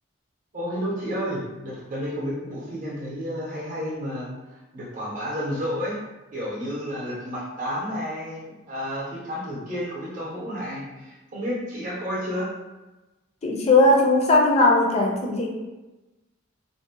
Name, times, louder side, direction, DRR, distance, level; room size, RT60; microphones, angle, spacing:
voice 1, 0.5-6.0 6.3-12.5, equal, 40° right, -6 dB, 0.7 m, -31 dB
voice 2, 13.4-15.5, left 2 dB, 30° left, 0 dB, 0.4 m, -18 dB
2.5 x 2.0 x 2.8 m, 1.1 s
head